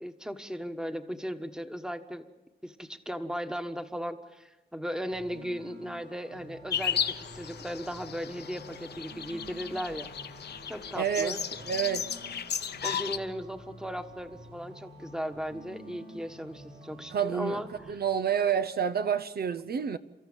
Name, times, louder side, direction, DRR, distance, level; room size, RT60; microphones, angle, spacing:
voice 1, 0.0-2.3 2.6-10.1 10.7-11.4 12.8-18.0, equal, 5° right, 1.4 m, -37 dB
sound 1, 5.1-17.9, right 1 dB, 85° right, 4.7 m, -50 dB
sound 2, 6.7-13.2, left 8 dB, 75° left, 0.9 m, -35 dB
voice 2, 11.0-11.4 11.7-12.1 17.1-17.6 17.9-20.0, right 8 dB, 65° right, 0.8 m, -28 dB
30.0 x 14.0 x 8.9 m
wide cardioid pair, 120°, 17 cm